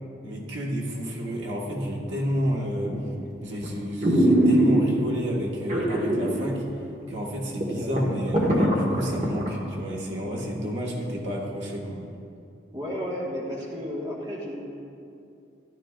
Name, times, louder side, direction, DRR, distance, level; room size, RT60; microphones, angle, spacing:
voice 1, 0.2-3.0 3.4-6.6 7.1-12.0, equal, 80° right, -3 dB, 1.5 m, -30 dB
sound 1, 2.8-3.2 3.6-3.7 4.0-5.1 5.7-6.4 6.7-6.8 7.3-7.4 7.6-9.5 9.9-10.0, right 1 dB, 40° right, 1.6 m, -21 dB
voice 2, 12.7-14.6, equal, 20° right, -5 dB, 1.5 m, -32 dB
13.0 x 12.0 x 2.5 m, 2.6 s
head